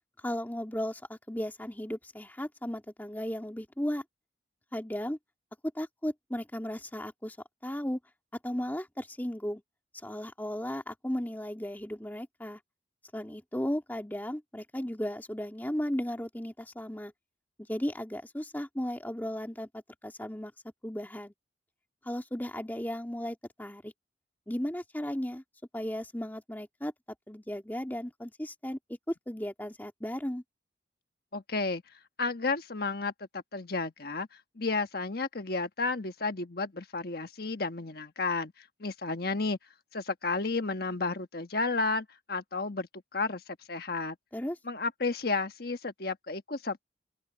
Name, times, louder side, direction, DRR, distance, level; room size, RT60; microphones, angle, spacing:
voice 1, 0.2-4.0 4.7-5.2 5.7-7.4 7.6-8.0 8.4-9.6 10.0-12.6 13.1-17.1 17.7-20.5 20.8-21.3 22.0-23.9 24.5-25.4 25.7-26.9 27.3-28.8 29.1-30.4 44.3-44.6, equal, 10° left, 2.1 m, -35 dB
voice 2, 31.3-31.8 32.2-34.3 34.6-38.5 38.8-39.6 39.9-43.4 43.7-44.2 44.7-46.8, left 3 dB, 55° left, 1.4 m, -32 dB
open air
head